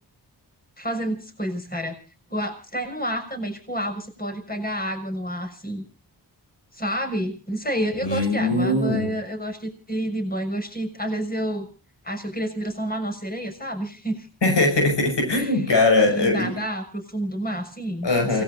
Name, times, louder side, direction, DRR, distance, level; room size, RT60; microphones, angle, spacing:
voice 1, 0.8-1.9 2.3-5.8 6.7-11.7 12.0-14.3 15.3-15.6 16.1-18.4, equal, 20° left, 5 dB, 6.5 m, -29 dB
voice 2, 8.0-9.1 14.4-16.6 18.0-18.4, left 2 dB, 80° left, 2 dB, 6.0 m, -21 dB
28.5 x 19.0 x 2.6 m, 0.35 s
cardioid pair, 40°, 42 cm